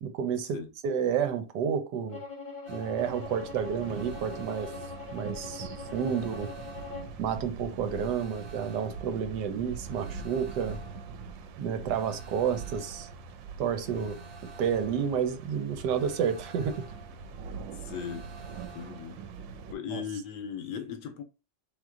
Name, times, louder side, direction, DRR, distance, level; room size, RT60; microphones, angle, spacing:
voice 1, 0.0-2.2 2.7-4.7 5.1-6.5 7.2-10.8 11.6-13.1 13.6-14.2 14.6-16.8 19.9-20.0, right 7 dB, 75° right, 1.2 m, -30 dB
Bowed string instrument, 2.1-7.2, left 4 dB, 35° left, 0.8 m, -42 dB
sound 1, 2.7-19.3, equal, 55° right, 1.2 m, -49 dB
sound 2, 3.0-19.7, right 6 dB, 90° right, 1.3 m, -43 dB
voice 2, 17.7-18.3 18.7-19.2 19.7-21.2, left 7 dB, 75° left, 1.1 m, -38 dB
3.7 x 2.9 x 3.6 m
omnidirectional pair, 2.0 m